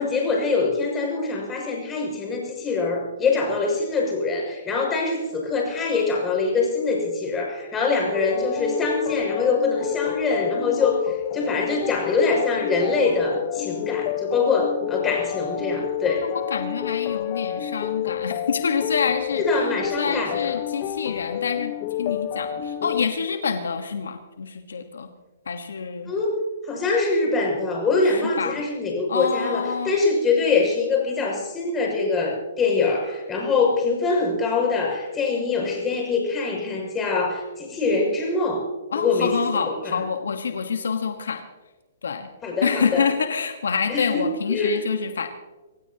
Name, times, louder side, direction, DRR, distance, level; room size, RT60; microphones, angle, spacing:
voice 1, 0.0-16.3 19.4-20.5 26.0-26.4 26.6-38.7 38.9-40.0 42.4-43.1 43.9-44.8, left 4 dB, 15° left, 0 dB, 6.5 m, -24 dB
sound 1, 8.1-23.1, left 11 dB, 40° left, 1.0 m, -29 dB
voice 2, 16.2-19.7 20.0-21.7 22.0-25.1 25.5-26.1 28.1-28.6 29.1-29.9 38.9-41.4 42.0-42.3 42.6-45.3, left 6 dB, 80° left, 7 dB, 1.3 m, -27 dB
26.5 x 16.0 x 2.9 m, 1.2 s
hypercardioid pair, 140°, 0 cm